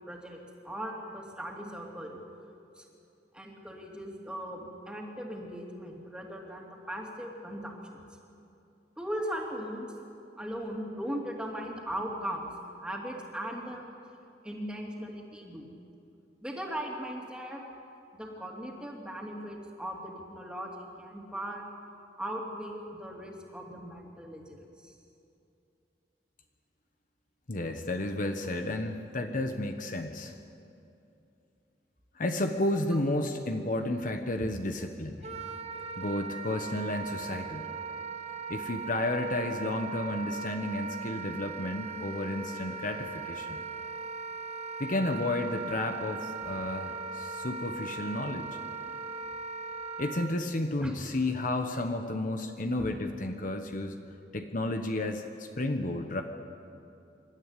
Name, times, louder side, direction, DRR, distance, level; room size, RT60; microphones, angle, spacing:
voice 1, 0.0-2.2 2.7-2.8 3.3-8.0 9.0-9.9 10.4-12.5 12.8-13.8 14.4-15.8 16.4-17.6 18.1-21.7 22.2-24.9 46.4-46.5 50.8-50.9 52.8-52.9, equal, 5° right, -1 dB, 3.0 m, -38 dB
voice 2, 27.5-30.3 32.2-35.3 36.0-37.7 38.5-43.6 44.8-48.5 50.0-54.0 54.3-56.2, left 1 dB, 50° left, 5 dB, 1.2 m, -32 dB
Wind instrument woodwind instrument, 35.2-50.3, right 5 dB, 35° right, 1.2 m, -39 dB
26.0 x 13.0 x 9.9 m, 2.7 s
head